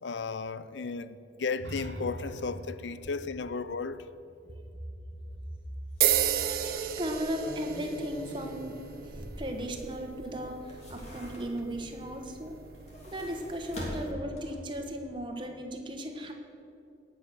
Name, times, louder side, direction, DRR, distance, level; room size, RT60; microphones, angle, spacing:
voice 1, 0.0-4.0, left 4 dB, 85° left, 0.5 m, -34 dB
sound 1, 1.6-5.4, equal, 85° right, 1.0 m, -44 dB
sound 2, 5.4-5.6 6.0-6.1 7.0-10.1 10.5-11.8 12.6-14.8 15.1-15.2, equal, 40° left, 2.9 m, -44 dB
sound 3, 6.0-14.1, right 10 dB, 55° right, 0.6 m, -34 dB
voice 2, 6.4-8.8 9.1-12.5 13.1-16.3, equal, 25° right, 1.2 m, -36 dB
18.0 x 6.2 x 7.0 m
head